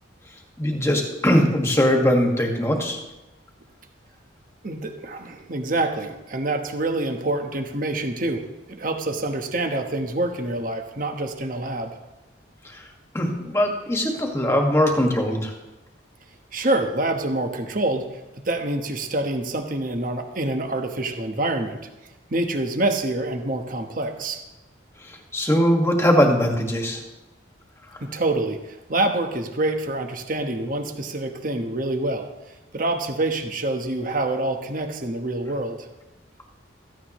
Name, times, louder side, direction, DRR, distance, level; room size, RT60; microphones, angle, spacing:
voice 1, 0.6-3.0 12.7-12.8 13.1-15.5 25.0-27.0, equal, 15° left, 1 dB, 1.8 m, -21 dB
voice 2, 4.6-8.4 8.7-12.0 16.5-18.0 18.3-21.8 22.3-24.4 28.0-32.3 32.7-35.9, right 2 dB, 45° right, 5 dB, 1.2 m, -26 dB
16.5 x 15.0 x 3.1 m, 1.0 s
head